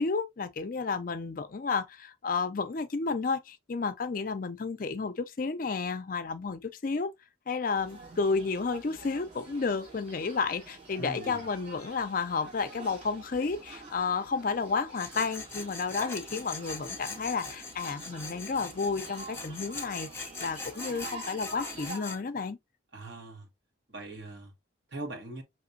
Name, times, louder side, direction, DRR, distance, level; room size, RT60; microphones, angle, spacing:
voice 1, 0.0-7.1 7.5-22.6, left 4 dB, 45° left, 0.4 m, -32 dB
sound 1, 7.7-22.0, right 2 dB, 40° right, 2.6 m, -47 dB
voice 2, 11.0-11.4 22.9-23.5 23.9-24.5 24.9-25.4, right 2 dB, 60° right, 1.6 m, -40 dB
Tools, 14.9-22.2, left 3 dB, 10° left, 1.1 m, -41 dB
5.9 x 3.1 x 2.6 m
head